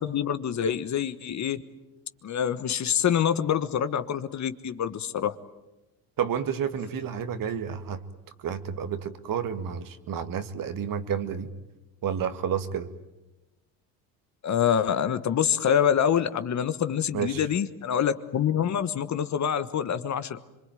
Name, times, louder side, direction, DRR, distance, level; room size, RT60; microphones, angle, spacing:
voice 1, 0.0-1.6 2.2-5.4 14.4-20.4, left 8 dB, 40° left, 12 dB, 1.4 m, -26 dB
voice 2, 6.2-8.0 8.4-11.5 12.0-12.9 17.1-17.4, right 8 dB, 50° right, 10 dB, 2.0 m, -30 dB
25.5 x 23.5 x 9.2 m, 1.0 s
supercardioid pair, 85°, 42 cm